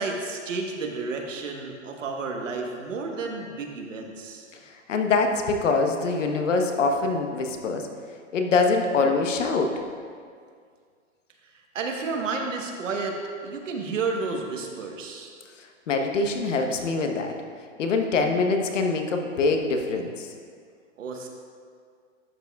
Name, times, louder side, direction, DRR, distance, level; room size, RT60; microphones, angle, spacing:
voice 1, 0.0-4.5 11.7-15.3 21.0-21.3, right 4 dB, 85° right, 2 dB, 1.3 m, -31 dB
voice 2, 4.7-7.9 8.3-9.7 15.6-17.3 17.8-20.3, left 3 dB, 75° left, 4 dB, 1.1 m, -24 dB
11.5 x 7.0 x 2.4 m, 2.1 s
hypercardioid pair, 175°, 37 cm